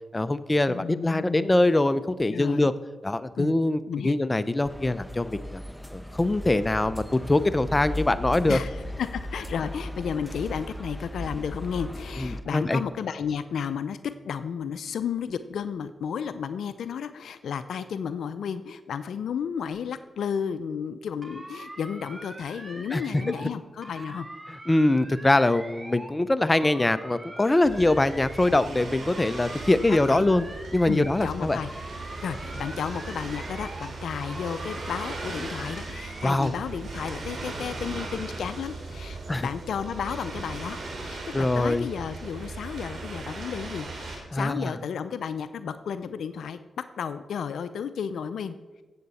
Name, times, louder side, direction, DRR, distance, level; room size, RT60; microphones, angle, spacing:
voice 1, 0.1-2.7 3.0-5.6 5.9-8.6 12.2-12.8 22.9-23.0 24.7-30.4 30.7-31.6 36.2-36.5 39.3-39.5 41.3-41.9 44.3-44.7, left 2 dB, 25° left, 13 dB, 0.6 m, -23 dB
voice 2, 0.7-1.5 2.3-2.7 3.4-3.5 3.9-4.1 8.5-14.0 14.2-24.3 29.9-30.2 30.8-31.7 32.2-46.6 47.0-48.8, left 7 dB, 80° left, 12 dB, 0.4 m, -33 dB
sound 1, 4.6-12.4, left 1 dB, ahead, 1.0 m, -37 dB
sound 2, 21.2-23.5 23.8-26.1 26.4-28.7 29.0-31.3 31.6-33.9 34.2-36.5, right 1 dB, 25° right, 1.9 m, -43 dB
sound 3, 27.6-44.2, right 3 dB, 70° right, 2.8 m, -38 dB
16.5 x 7.7 x 4.2 m, 1.3 s
supercardioid pair, 45°, 0 cm